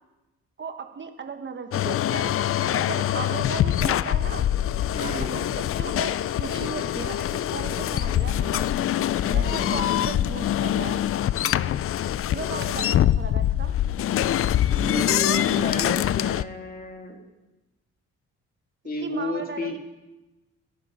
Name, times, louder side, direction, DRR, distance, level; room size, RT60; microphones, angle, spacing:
voice 1, 0.6-2.4 2.7-4.5 5.0-8.7 9.3-11.0 12.3-13.8 19.0-19.8, right 5 dB, 40° right, 6 dB, 1.3 m, -36 dB
sound 1, 1.7-16.4, left 11 dB, 45° left, 0.4 m, -24 dB
voice 2, 4.9-5.3 9.2-9.8 14.7-17.2 18.8-19.8, left 2 dB, 30° left, 3 dB, 2.5 m, -32 dB
18.0 x 11.0 x 5.1 m, 1.1 s
cardioid pair, 90°, 30 cm